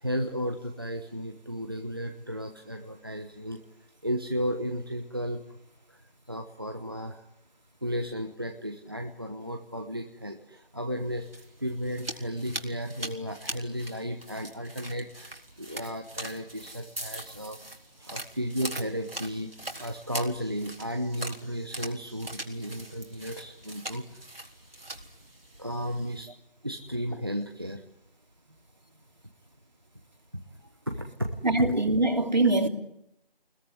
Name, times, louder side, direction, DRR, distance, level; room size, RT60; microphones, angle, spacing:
voice 1, 0.0-3.6 4.0-5.6 5.9-6.0 6.3-7.2 7.8-11.3 11.6-17.6 18.0-19.5 19.8-24.2 24.7-24.9 25.6-26.3 26.6-27.8 30.3-30.4 30.9-31.4, equal, 25° right, 4 dB, 1.1 m, -34 dB
sound 1, 11.0-26.2, right 1 dB, 75° right, 4.0 m, -42 dB
voice 2, 31.4-32.7, right 2 dB, 50° right, 6 dB, 3.0 m, -23 dB
28.5 x 21.0 x 9.6 m, 0.83 s
figure-of-eight pair, 175°, 29 cm